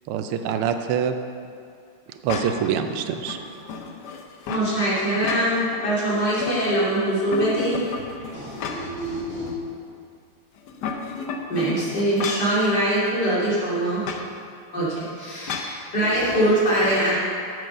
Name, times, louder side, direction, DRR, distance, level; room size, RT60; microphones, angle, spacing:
voice 1, 0.1-1.1 2.1-3.4, right 8 dB, 90° right, 7 dB, 1.6 m, -25 dB
sound 1, 2.3-2.7 3.2-4.7 5.1-5.8 6.2-6.9 7.3-9.1 9.5-9.6 10.6-12.6 14.0-14.3 15.5-15.8, left 5 dB, 65° left, 1.0 m, -32 dB
voice 2, 4.5-7.8 8.2-8.3 11.5-14.0 14.7-17.1, right 1 dB, 50° left, -9 dB, 3.4 m, -23 dB
voice 3, 8.3-9.5 16.1-16.3 16.7-16.9, right 1 dB, 25° left, -9 dB, 2.7 m, -33 dB
7.7 x 6.4 x 6.7 m, 2.3 s
omnidirectional pair, 2.4 m